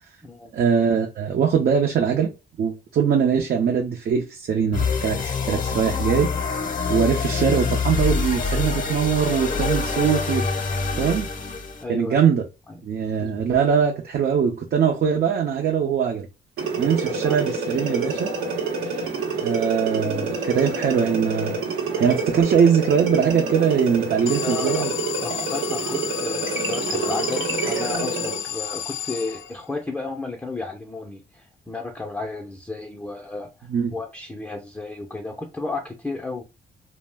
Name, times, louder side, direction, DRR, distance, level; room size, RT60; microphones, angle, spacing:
voice 1, 0.5-2.3 2.6-6.3 6.9-10.5 11.0-11.3 11.9-12.4 12.8-16.3 16.8-18.3 19.4-21.6 22.0-24.9 33.7-33.9, right 7 dB, 50° right, 0.5 m, -21 dB
sound 1, 4.7-11.8, left 4 dB, 40° left, 0.7 m, -25 dB
voice 2, 11.8-12.2 12.7-12.9 13.2-13.3 17.1-17.5 24.4-24.9 25.2-36.4, left 3 dB, 10° left, 0.5 m, -33 dB
sound 2, 16.6-28.4, right 4 dB, 85° right, 0.9 m, -27 dB
Alarm, 24.3-29.8, left 10 dB, 75° left, 0.4 m, -31 dB
2.3 x 2.0 x 3.3 m
cardioid pair, 90°, 20 cm